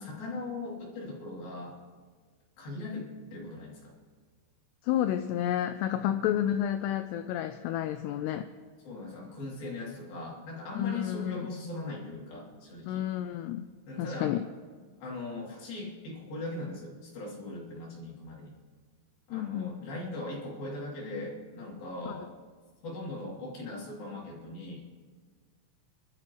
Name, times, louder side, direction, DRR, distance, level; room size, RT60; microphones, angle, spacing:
voice 1, 0.0-1.8 2.6-3.9 6.0-6.2 8.8-13.1 13.9-14.4 15.0-18.6 19.3-22.3 22.8-25.0, left 2 dB, 55° left, -4 dB, 4.3 m, -39 dB
voice 2, 4.8-8.5 10.7-11.5 12.9-13.7 14.0-14.5 19.3-19.9 22.0-22.2, left 11 dB, 85° left, 10 dB, 2.4 m, -30 dB
27.0 x 12.5 x 3.0 m, 1.5 s
omnidirectional pair, 5.3 m